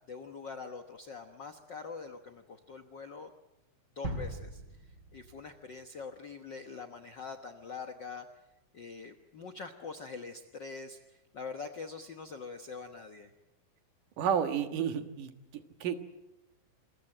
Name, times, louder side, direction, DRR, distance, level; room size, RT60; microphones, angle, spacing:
voice 1, 0.1-3.3 3.9-8.3 8.7-13.3, left 4 dB, 80° left, 6 dB, 1.0 m, -44 dB
sound 1, 4.0-6.1, right 1 dB, 30° right, 6.4 m, -41 dB
voice 2, 14.2-16.0, right 8 dB, 70° right, 7 dB, 3.0 m, -32 dB
27.5 x 22.0 x 7.8 m, 0.94 s
omnidirectional pair, 4.0 m